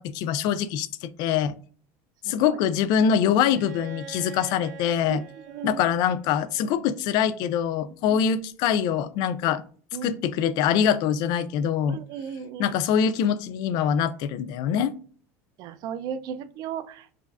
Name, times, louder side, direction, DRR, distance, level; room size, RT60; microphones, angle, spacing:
voice 1, 0.0-1.5 2.2-5.2 5.6-9.6 10.0-12.0 12.6-14.9, left 8 dB, 60° left, 15 dB, 0.3 m, -24 dB
voice 2, 2.2-2.6 5.1-5.8 8.1-8.2 9.9-10.2 11.9-12.8 15.6-17.1, right 8 dB, 55° right, 12 dB, 0.4 m, -35 dB
Bowed string instrument, 3.5-7.2, right 4 dB, 85° right, 1.5 m, -45 dB
4.8 x 2.6 x 2.3 m, 0.44 s
supercardioid pair, 115°, 8 cm